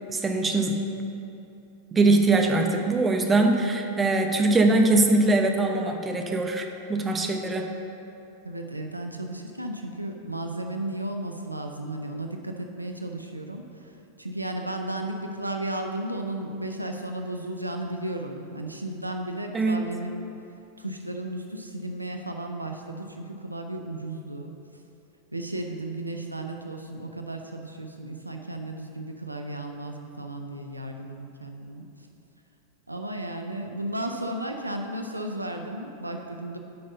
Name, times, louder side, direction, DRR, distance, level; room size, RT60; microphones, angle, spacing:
voice 1, 0.1-0.8 1.9-7.7 19.5-19.8, right 2 dB, 15° right, 3 dB, 0.8 m, -22 dB
voice 2, 8.4-13.9 14.2-20.2 20.8-24.5 25.3-31.9 32.9-36.6, right 1 dB, 85° right, 4 dB, 0.6 m, -34 dB
7.8 x 5.4 x 7.0 m, 2.9 s
figure-of-eight pair, 90°, 0 cm